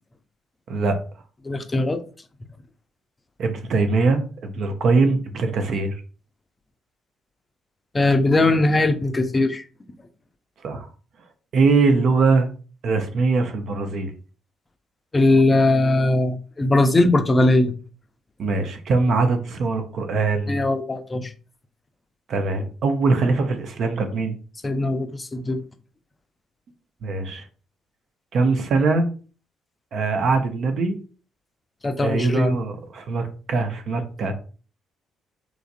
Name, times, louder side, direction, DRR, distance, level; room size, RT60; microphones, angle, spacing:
voice 1, 1.4-2.0 7.9-9.6 15.1-17.7 20.5-21.3 24.6-25.6 31.8-32.6, left 2 dB, 25° left, 7 dB, 0.4 m, -20 dB
voice 2, 3.4-6.0 10.6-10.9 11.5-12.5 12.8-14.1 18.4-20.6 22.3-24.4 27.0-27.5 28.3-29.1 29.9-31.0 32.0-34.3, right 3 dB, 60° right, 7 dB, 0.5 m, -22 dB
3.0 x 2.4 x 2.5 m, 0.37 s
hypercardioid pair, 45°, 0 cm